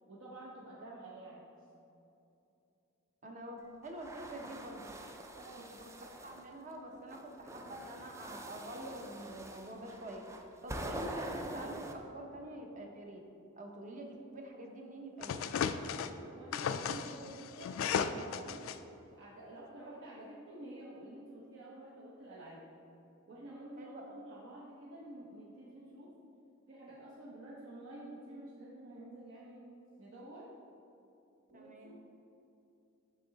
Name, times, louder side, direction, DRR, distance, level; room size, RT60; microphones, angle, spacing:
voice 1, 0.1-1.5 5.3-5.7 15.8-18.8 19.2-22.6 23.3-26.1 26.7-29.6 30.0-30.5 31.5-31.9, right 1 dB, 65° right, -6 dB, 0.9 m, -50 dB
voice 2, 3.2-5.0 5.8-5.9 6.2-10.2 10.6-13.2 13.6-15.4 23.8-24.2 31.5-31.9, right 1 dB, 40° right, 2 dB, 0.8 m, -46 dB
sound 1, 3.8-6.4 7.1-11.9, right 1 dB, 15° right, 0.4 m, -45 dB
sound 2, 15.2-16.1 16.5-18.8, left 7 dB, 70° left, 0.3 m, -35 dB
6.7 x 6.1 x 3.9 m, 2.8 s
head